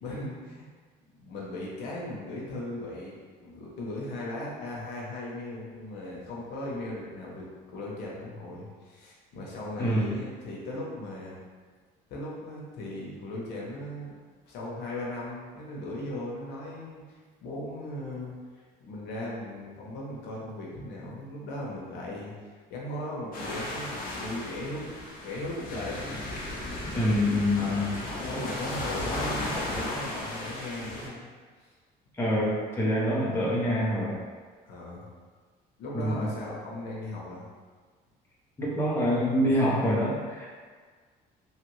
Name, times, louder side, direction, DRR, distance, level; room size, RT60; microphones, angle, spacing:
voice 1, 0.0-0.7 1.2-3.1 3.4-11.4 12.1-14.2 14.5-17.0 17.4-22.3 22.7-24.9 25.2-26.1 26.9-27.1 27.5-31.3 34.7-35.1 35.8-37.4, left 1 dB, 85° left, -4 dB, 0.8 m, -37 dB
voice 2, 9.8-10.1 26.9-27.9 32.2-34.2 35.9-36.2 38.6-40.4, equal, 15° left, -6 dB, 0.8 m, -26 dB
sound 1, 23.3-31.1, left 1 dB, 55° left, 0.8 m, -35 dB
3.0 x 2.4 x 3.1 m, 1.5 s
cardioid pair, 110°, 17 cm